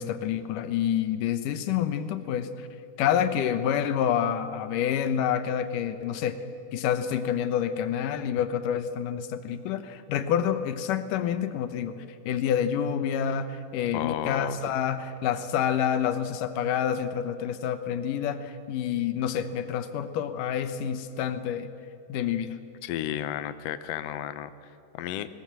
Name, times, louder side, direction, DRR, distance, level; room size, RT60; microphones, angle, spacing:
voice 1, 0.0-2.7 3.0-6.4 6.7-21.7 22.1-22.6, left 9 dB, 90° left, 10 dB, 2.6 m, -28 dB
voice 2, 13.9-14.6 22.8-25.3, left 11 dB, 70° left, 11 dB, 1.5 m, -33 dB
20.0 x 19.0 x 7.5 m, 2.5 s
omnidirectional pair, 3.6 m